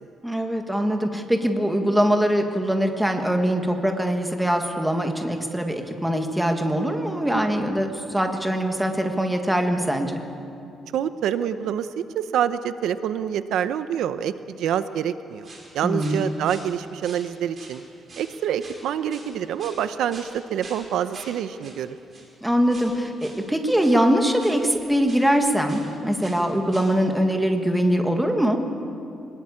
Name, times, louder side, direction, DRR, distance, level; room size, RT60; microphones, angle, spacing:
voice 1, 0.2-10.1 15.8-16.2 22.4-28.6, equal, 5° right, 4 dB, 1.7 m, -22 dB
voice 2, 10.9-15.5 15.7-17.8 18.2-22.0, right 9 dB, 75° right, 12 dB, 0.8 m, -26 dB
sound 1, 15.4-15.7 16.0-16.7 17.0-17.8 18.1-18.3 18.6-18.8 19.1-19.8 20.1-20.3 20.6-20.8 21.1-21.4 21.6-21.8 22.1-22.3 22.7-22.9 23.2-23.4 23.8-24.0 24.4-25.3 25.7-25.9 26.2-26.4 26.7-26.9, right 3 dB, 30° right, 5.0 m, -44 dB
24.0 x 20.5 x 8.7 m, 2.6 s
cardioid pair, 175°, 0 cm